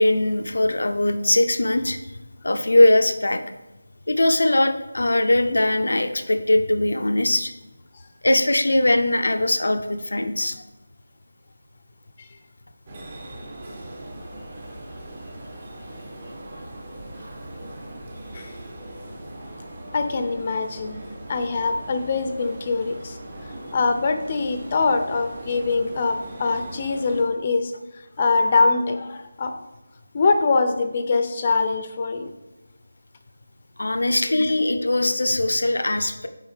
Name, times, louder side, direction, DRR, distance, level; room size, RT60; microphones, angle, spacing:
voice 1, 0.0-2.0 2.4-3.4 4.1-7.5 8.2-10.6 13.6-13.7 33.8-36.3, left 1 dB, 75° left, 7 dB, 0.6 m, -20 dB
sound 1, 12.9-27.2, right 1 dB, 35° right, 1.3 m, -39 dB
voice 2, 19.9-21.0 21.3-23.2 23.7-29.6 30.1-32.3 34.4-34.5, left 4 dB, 30° left, 8 dB, 0.6 m, -23 dB
9.2 x 4.9 x 3.3 m, 1.0 s
figure-of-eight pair, 165°, 0 cm